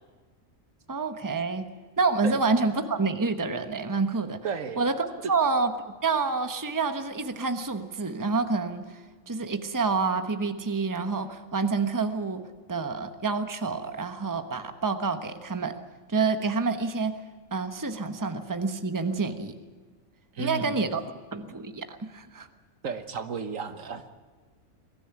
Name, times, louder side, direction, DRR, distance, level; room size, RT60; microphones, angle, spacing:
voice 1, 0.9-1.6 2.0-4.4 4.8-5.7 6.0-12.4 12.7-15.7 16.1-17.2 17.5-19.6 20.4-21.0 21.3-22.5, right 4 dB, 15° right, 8 dB, 1.1 m, -28 dB
voice 2, 4.4-4.8 20.3-20.8 22.8-24.1, right 5 dB, 75° right, 9 dB, 1.7 m, -33 dB
22.5 x 14.5 x 9.9 m, 1.4 s
omnidirectional pair, 1.4 m